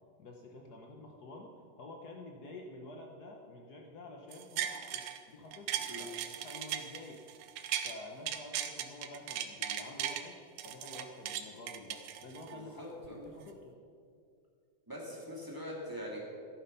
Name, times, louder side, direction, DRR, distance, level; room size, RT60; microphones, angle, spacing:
voice 1, 0.2-7.2 7.8-13.7, left 2 dB, 85° left, 1 dB, 0.8 m, -49 dB
sound 1, 4.3-5.2 5.5-7.9 8.3-10.2 10.6-12.6 13.0-13.1, right 10 dB, 80° right, 2.2 m, -37 dB
voice 2, 12.5-13.2 14.9-16.2, equal, 5° right, -4 dB, 2.6 m, -43 dB
14.5 x 12.0 x 5.6 m, 2.3 s
omnidirectional pair, 3.3 m